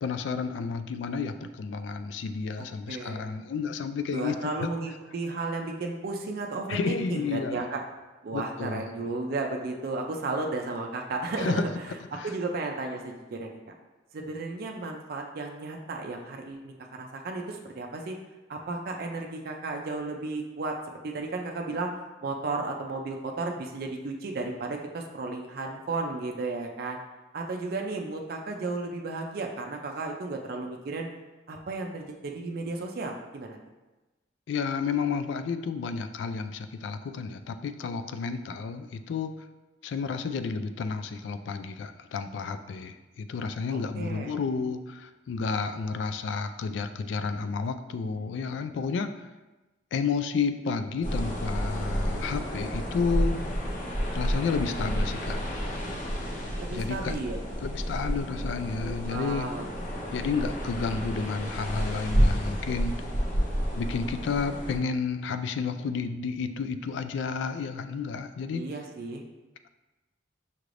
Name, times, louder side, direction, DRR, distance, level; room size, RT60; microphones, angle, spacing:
voice 1, 0.0-4.7 6.7-7.7 8.3-9.1 11.4-11.7 12.1-12.3 34.5-39.3 39.8-49.3 49.9-53.4 54.1-55.6 56.7-57.2 57.6-59.5 60.1-62.9 63.7-68.6, left 5 dB, 75° left, 10 dB, 0.3 m, -31 dB
voice 2, 2.6-3.4 4.1-7.8 8.2-13.6 14.1-18.2 18.5-20.8 21.0-21.9 22.2-27.0 27.3-31.1 31.5-33.6 43.6-44.4 56.5-57.4 58.8-59.7 68.5-69.2, right 3 dB, 55° right, 2 dB, 0.4 m, -34 dB
sound 1, 51.0-64.8, equal, 45° left, 0.8 m, -30 dB
5.8 x 3.2 x 2.5 m, 1.1 s
head